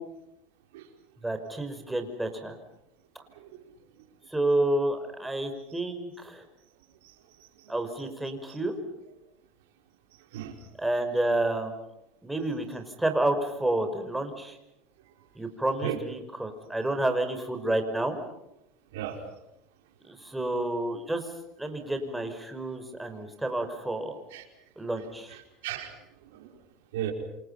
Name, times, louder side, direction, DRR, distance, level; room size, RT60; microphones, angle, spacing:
voice 1, 1.2-2.6 4.3-6.4 7.7-8.8 10.8-11.7 12.2-14.6 15.4-18.2 20.0-21.2 21.6-24.2 24.8-25.4, right 1 dB, 5° right, 6 dB, 5.6 m, -29 dB
voice 2, 18.9-19.2 24.3-24.5 25.3-25.9 26.3-26.6 26.9-27.1, right 12 dB, 85° right, 3 dB, 4.9 m, -36 dB
28.5 x 28.0 x 5.8 m, 0.86 s
supercardioid pair, 115°, 0 cm